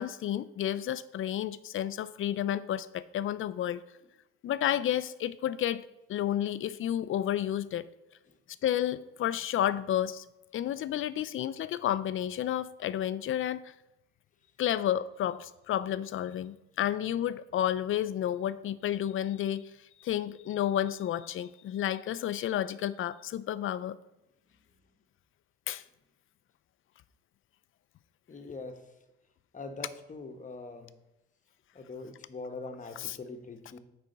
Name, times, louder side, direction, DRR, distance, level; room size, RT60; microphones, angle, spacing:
voice 1, 0.0-3.8 4.4-7.9 8.6-10.2 10.5-13.7 14.6-19.7 20.0-24.0 25.7-25.8 33.0-33.2, left 11 dB, 45° left, 16 dB, 0.5 m, -31 dB
voice 2, 28.3-28.8 29.5-30.9 31.7-33.8, left 3 dB, 25° left, 6 dB, 1.2 m, -42 dB
9.0 x 4.2 x 5.2 m, 0.93 s
supercardioid pair, 85°, 30 cm